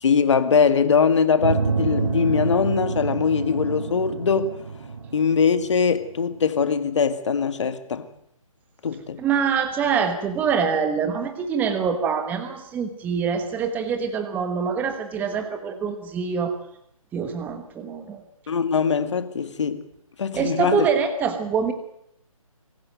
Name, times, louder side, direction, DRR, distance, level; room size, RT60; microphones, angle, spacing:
voice 1, 0.0-4.5 5.1-8.1 8.8-9.2 18.5-19.8 20.2-20.9, left 6 dB, 55° left, 2.1 m, -21 dB
sound 1, 1.4-6.3, right 4 dB, 55° right, 4.1 m, -28 dB
voice 2, 9.2-16.6 17.1-18.2 20.3-21.7, right 6 dB, 10° right, 1.2 m, -25 dB
24.0 x 14.0 x 9.1 m
figure-of-eight pair, 150°, 18 cm